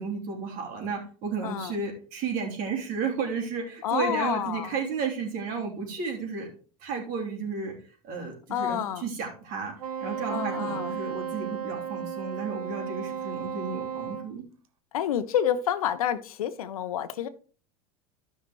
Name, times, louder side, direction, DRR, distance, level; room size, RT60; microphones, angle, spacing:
voice 1, 0.0-6.5 6.8-7.7 8.0-9.7 10.0-14.4, right 5 dB, 50° right, 0 dB, 3.2 m, -33 dB
voice 2, 1.4-1.7 3.8-4.8 8.5-9.1 10.3-11.0 14.9-17.3, left 10 dB, 80° left, 12 dB, 0.8 m, -29 dB
Wind instrument woodwind instrument, 9.8-14.3, right 8 dB, 80° right, 0.9 m, -34 dB
13.0 x 5.8 x 3.1 m, 0.40 s
hypercardioid pair, 95°, 18 cm